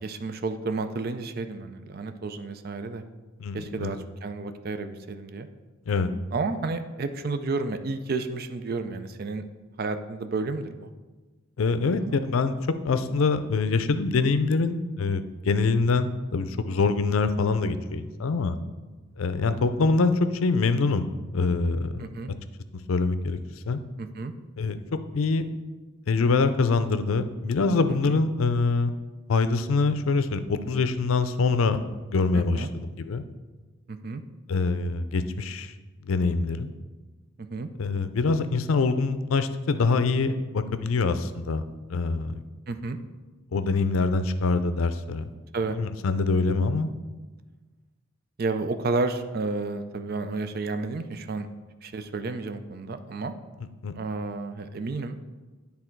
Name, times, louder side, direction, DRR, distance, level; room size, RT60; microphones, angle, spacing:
voice 1, 0.0-3.0 3.5-5.5 6.3-9.4 9.8-10.9 22.0-22.3 24.0-24.3 28.1-28.2 32.3-32.7 33.9-34.2 37.4-37.7 42.7-43.0 45.5-45.8 48.4-51.5 51.8-53.3 53.9-55.2, right 3 dB, 50° right, 10 dB, 0.4 m, -31 dB
voice 2, 3.4-3.9 5.9-6.1 11.6-12.5 12.8-18.6 19.2-21.0 21.3-22.0 22.9-23.4 23.7-23.8 24.6-24.8 25.1-25.5 26.1-28.9 29.3-31.8 32.1-32.7 33.0-33.2 34.5-35.7 36.0-36.7 37.8-41.6 41.9-42.3 43.5-45.3 45.7-46.9 53.8-53.9, left 4 dB, 90° left, 11 dB, 0.5 m, -24 dB
10.0 x 3.5 x 4.5 m, 1.3 s
head